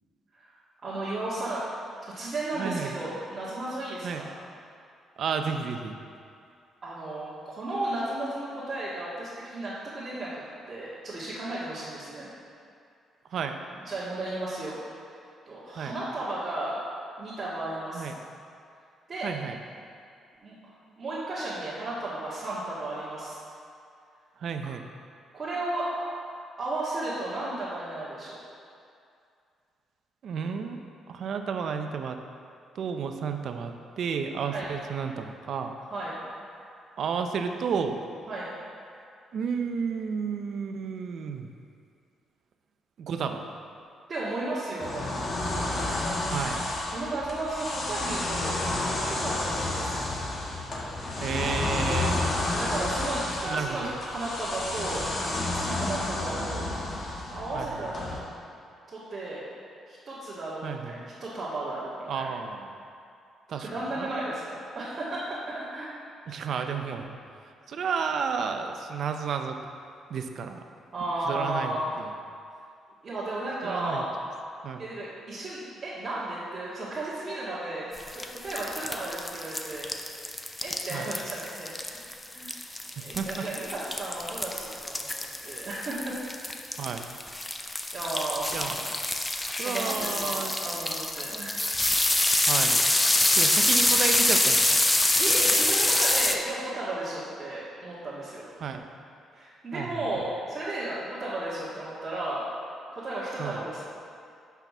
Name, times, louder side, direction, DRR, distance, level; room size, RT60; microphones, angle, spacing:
voice 1, 0.8-4.3 6.8-10.4 10.7-12.3 13.8-14.8 15.5-16.7 17.2-18.1 19.1-19.3 20.4-20.5 21.0-23.4 25.3-26.1 26.6-28.4 34.5-34.7 35.9-36.2 38.3-38.5 44.1-45.1 46.9-48.6 49.1-50.0 52.5-55.0 55.3-56.7 57.3-57.9 58.9-59.5 59.9-62.3 63.6-65.2 65.5-65.9 70.9-71.9 73.0-74.1 74.8-79.9 80.6-81.7 82.3-82.6 83.0-86.1 87.5-87.7 87.9-88.6 89.3-91.6 95.0-98.4 99.3-102.4 102.9-103.8, right 2 dB, 40° right, -10 dB, 1.8 m, -34 dB
voice 2, 2.6-3.0 4.0-4.3 5.2-6.0 13.3-13.6 15.8-16.0 17.9-18.1 19.2-19.6 24.4-24.9 30.2-30.8 31.1-32.2 32.7-35.7 37.0-37.9 39.3-41.5 43.0-43.4 46.2-46.7 51.2-52.2 53.5-53.9 57.5-57.9 60.6-61.0 62.1-62.8 63.5-64.1 66.3-67.2 67.7-69.6 70.1-70.6 71.3-72.1 73.6-74.0 74.6-74.8 80.9-81.1 82.9-83.5 86.8-87.1 88.5-88.9 89.5-90.5 92.5-92.8 93.3-94.8 98.6-98.8 99.7-100.0 103.4-103.6, right 6 dB, 65° right, 6 dB, 0.6 m, -32 dB
sound 1, 44.8-58.2, left 2 dB, 45° left, 1.5 m, -30 dB
sound 2, 77.9-96.3, left 1 dB, 15° left, 0.5 m, -26 dB
5.8 x 5.7 x 6.0 m, 2.4 s
cardioid pair, 90°, 0 cm